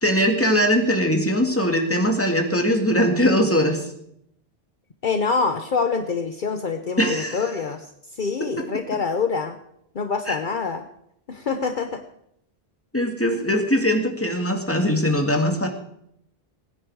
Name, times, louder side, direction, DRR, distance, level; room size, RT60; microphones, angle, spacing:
voice 1, 0.0-3.8 7.0-7.4 10.3-10.4 12.9-15.7, equal, 15° left, 2 dB, 2.1 m, -21 dB
voice 2, 5.0-9.6 9.9-10.8 11.3-12.0, left 5 dB, 55° left, 7 dB, 1.0 m, -25 dB
20.5 x 10.0 x 4.8 m, 0.76 s
omnidirectional pair, 1.0 m